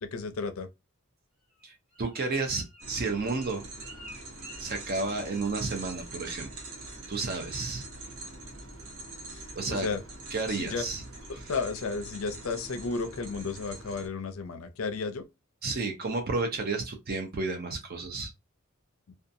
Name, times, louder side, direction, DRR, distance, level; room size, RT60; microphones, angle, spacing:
voice 1, 0.0-0.7 9.3-10.0 10.5-10.8 11.3-15.3, left 4 dB, 65° left, 0.5 m, -33 dB
Bird, 1.5-5.6 5.8-6.2 6.5-6.8 7.2-7.6 8.0-8.1, equal, 5° left, 1.2 m, -52 dB
voice 2, 1.6-3.7 4.6-6.5 7.1-7.8 9.6-9.9 10.3-11.0 15.6-18.3, right 3 dB, 45° right, 0.5 m, -31 dB
sound 1, 2.8-14.1, right 2 dB, 65° right, 0.9 m, -44 dB
2.7 x 2.2 x 2.6 m
head